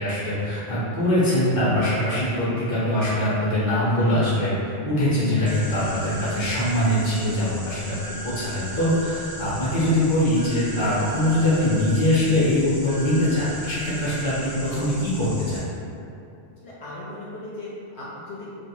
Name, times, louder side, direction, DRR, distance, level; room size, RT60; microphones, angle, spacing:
voice 1, 0.0-4.5 4.8-15.6, left 1 dB, 30° left, -9 dB, 0.7 m, -22 dB
sound 1, 5.4-15.6, equal, 5° right, 0.6 m, -40 dB
sound 2, 5.4-6.9 7.9-9.4 10.4-11.9 12.9-14.4, right 2 dB, 65° right, 0.3 m, -39 dB
voice 2, 16.6-18.5, left 1 dB, 70° left, -8 dB, 0.8 m, -37 dB
2.4 x 2.3 x 3.1 m, 2.7 s
omnidirectional pair, 1.2 m